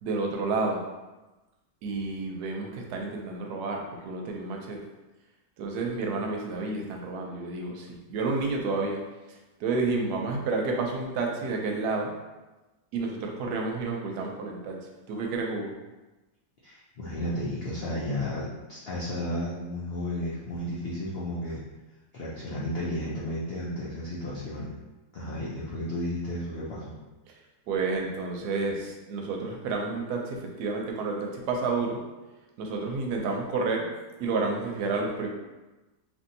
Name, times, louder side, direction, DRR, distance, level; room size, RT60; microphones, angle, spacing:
voice 1, 0.0-0.8 1.8-4.8 5.6-9.0 9.3-12.1 12.9-14.8 15.1-15.7 27.7-32.0 32.6-33.9 34.2-35.3, right 3 dB, 85° right, 1 dB, 1.2 m, -30 dB
voice 2, 16.6-21.6 22.1-24.7 25.1-27.0, left 1 dB, 70° left, -7 dB, 0.5 m, -33 dB
3.1 x 2.6 x 2.6 m, 1.1 s
omnidirectional pair, 1.7 m